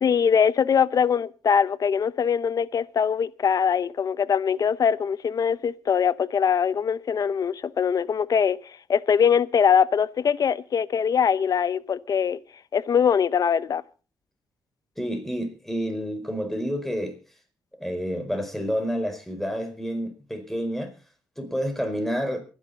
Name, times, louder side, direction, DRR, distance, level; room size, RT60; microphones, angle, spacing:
voice 1, 0.0-12.4 12.7-13.8, left 7 dB, 55° left, 0.8 m, -22 dB
voice 2, 15.0-17.2 17.8-20.9 21.4-22.4, equal, 5° left, 4.8 m, -29 dB
23.0 x 10.5 x 4.1 m
cardioid pair, 80°, 7 cm